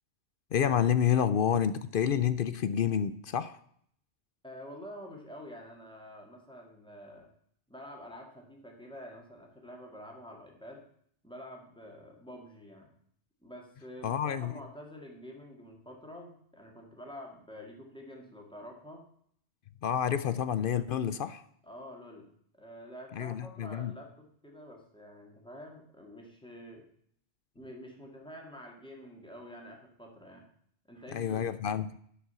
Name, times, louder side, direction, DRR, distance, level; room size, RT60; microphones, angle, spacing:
voice 1, 0.5-3.6 14.0-14.5 19.8-21.4 23.1-23.9 31.1-31.9, left 9 dB, 60° left, 14 dB, 0.6 m, -29 dB
voice 2, 4.4-7.3 7.7-10.8 11.2-12.9 13.4-19.1 21.6-22.3 22.6-26.8 27.5-30.5 30.9-31.5, equal, 5° left, 0 dB, 2.2 m, -48 dB
11.5 x 5.4 x 6.9 m, 0.65 s
omnidirectional pair, 1.2 m